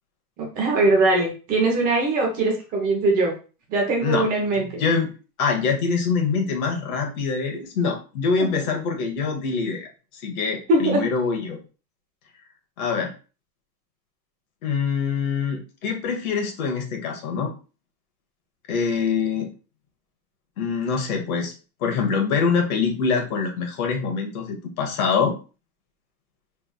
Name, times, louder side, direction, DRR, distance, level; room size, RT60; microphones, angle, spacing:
voice 1, 0.4-3.3 3.7-4.8 8.5-8.6 10.7-11.0, right 2 dB, 15° right, 0 dB, 0.7 m, -21 dB
voice 2, 4.6-5.1 5.4-11.6 12.8-13.1 14.6-17.5 18.7-19.5 20.6-21.5 21.8-25.3, left 5 dB, 60° left, 3 dB, 1.3 m, -24 dB
4.7 x 3.5 x 2.3 m, 0.34 s
supercardioid pair, 175°, 49 cm